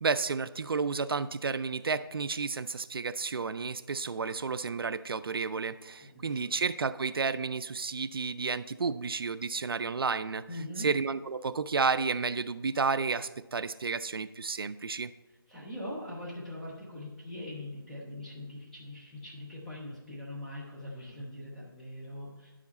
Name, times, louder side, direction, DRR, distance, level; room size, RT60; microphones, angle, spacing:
voice 1, 0.0-10.5 10.8-15.1, right 4 dB, 70° right, 14 dB, 0.4 m, -31 dB
voice 2, 6.0-6.5 10.5-10.9 15.5-22.5, left 1 dB, ahead, -7 dB, 0.6 m, -42 dB
10.5 x 4.9 x 4.0 m, 1.1 s
figure-of-eight pair, 165°, 13 cm